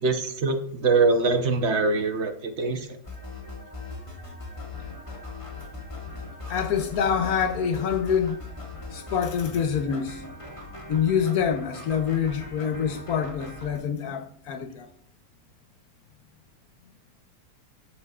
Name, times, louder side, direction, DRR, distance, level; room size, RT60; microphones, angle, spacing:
voice 1, 0.0-2.8, right 3 dB, 55° right, 1.1 m, -23 dB
sound 1, 3.0-13.8, left 2 dB, 20° left, 2.1 m, -40 dB
voice 2, 6.5-8.4 8.9-10.2 10.9-14.9, left 7 dB, 75° left, 1.4 m, -26 dB
13.0 x 5.3 x 2.4 m
omnidirectional pair, 1.6 m